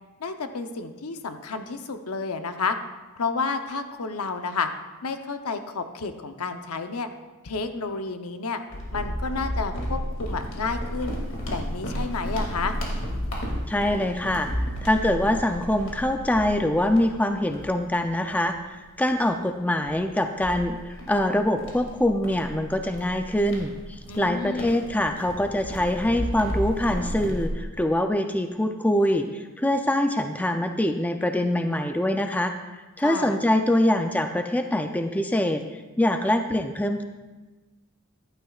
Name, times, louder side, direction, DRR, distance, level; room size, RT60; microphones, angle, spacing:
voice 1, 0.2-2.8 3.2-4.7 5.0-7.1 7.4-8.6 8.9-11.2 11.5-12.8 24.1-24.8 33.0-33.4, left 4 dB, 75° left, 7 dB, 0.8 m, -30 dB
sound 1, 8.7-18.6 19.1-19.2 19.8-27.5, equal, 60° left, 2.3 m, -33 dB
voice 2, 13.7-14.5 14.8-18.6 19.0-20.8 21.1-32.5 33.0-35.6 36.0-37.0, left 1 dB, 5° left, 6 dB, 0.4 m, -24 dB
15.0 x 11.5 x 2.4 m, 1.2 s
head